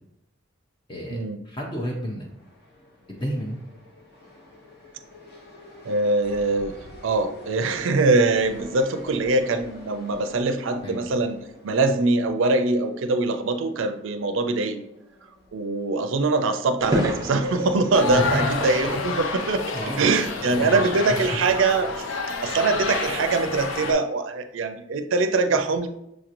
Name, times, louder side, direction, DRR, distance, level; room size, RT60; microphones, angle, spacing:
voice 1, 0.9-2.3 3.1-3.6 10.8-11.0 18.1-18.3 19.7-20.1 20.5-21.2, equal, 25° left, -1 dB, 0.5 m, -31 dB
sound 1, 1.9-17.6, equal, 50° left, 0.9 m, -48 dB
voice 2, 5.8-6.8 7.0-11.4 11.6-14.8 15.5-19.6 20.0-22.1 22.4-25.9, right 3 dB, 70° right, 8 dB, 0.4 m, -23 dB
sound 2, 16.8-22.1, equal, 20° right, 0.6 m, -33 dB
sound 3, 17.9-23.9, left 4 dB, 75° left, 0.5 m, -29 dB
6.3 x 2.9 x 2.5 m, 0.80 s
head